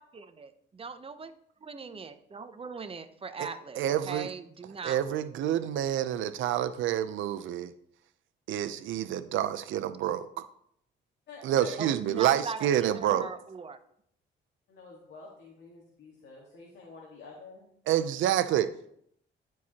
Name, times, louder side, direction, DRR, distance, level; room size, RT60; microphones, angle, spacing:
voice 1, 0.0-1.3 1.6-5.0 11.8-13.8, right 4 dB, 30° right, 0.7 m, -40 dB
voice 2, 3.8-4.3 4.8-7.7 8.5-10.3 11.4-13.3 17.9-18.7, right 11 dB, 80° right, 0.6 m, -28 dB
voice 3, 11.3-11.7 12.1-12.2 14.7-17.8, left 4 dB, 65° left, 1.7 m, -48 dB
14.0 x 4.7 x 2.9 m
cardioid pair, 90°, 20 cm